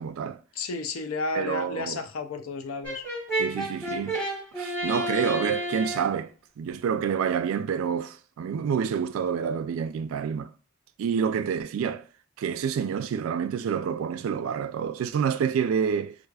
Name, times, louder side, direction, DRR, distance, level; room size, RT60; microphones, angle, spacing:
voice 1, 0.0-0.4 1.3-2.0 3.4-4.2 4.6-6.3 6.6-10.5 11.0-12.0 12.4-16.2, right 7 dB, 75° right, 0.3 m, -28 dB
voice 2, 0.6-3.0, left 3 dB, 80° left, 0.5 m, -32 dB
Brass instrument, 2.8-6.2, right 1 dB, 15° left, 1.0 m, -31 dB
4.6 x 2.4 x 2.3 m
head